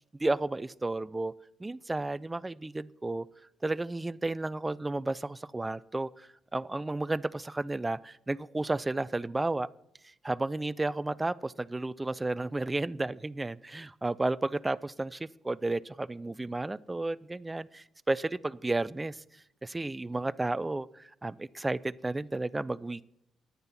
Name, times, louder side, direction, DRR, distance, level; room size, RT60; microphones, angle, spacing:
voice 1, 0.2-1.3 1.6-3.3 3.6-9.7 10.2-19.2 19.6-23.0, right 2 dB, 15° right, 19 dB, 0.4 m, -32 dB
9.7 x 9.3 x 5.8 m, 0.78 s
cardioid pair, 90°, 0 cm